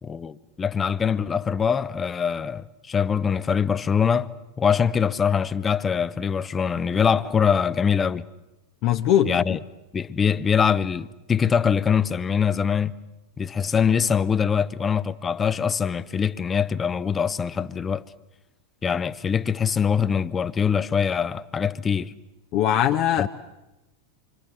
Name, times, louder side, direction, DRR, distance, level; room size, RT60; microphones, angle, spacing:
voice 1, 0.0-4.3 4.6-8.3 9.3-9.6 9.9-12.9 13.4-18.0 18.8-22.1 23.2-23.3, left 7 dB, 20° left, 1.0 m, -23 dB
voice 2, 8.8-9.4 22.5-23.3, left 11 dB, 45° left, 1.2 m, -20 dB
27.0 x 26.0 x 7.7 m
figure-of-eight pair, 90°, 0 cm